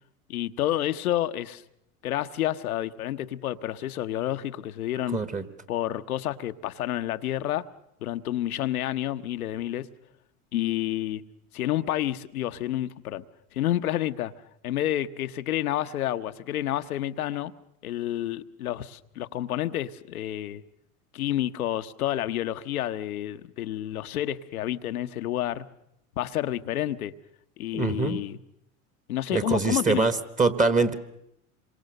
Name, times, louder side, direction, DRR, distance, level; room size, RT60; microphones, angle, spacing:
voice 1, 0.3-1.6 2.0-5.2 5.7-7.6 8.0-9.9 10.5-11.2 11.5-13.2 13.5-14.3 14.6-17.5 17.8-20.6 21.1-25.7 26.2-27.1 27.6-28.4 29.1-30.1, left 13 dB, 90° left, 1.1 m, -29 dB
voice 2, 5.1-5.4 27.7-28.2 29.3-30.9, right 4 dB, 20° right, 1.6 m, -24 dB
27.0 x 24.0 x 6.7 m
hypercardioid pair, 100°, 42 cm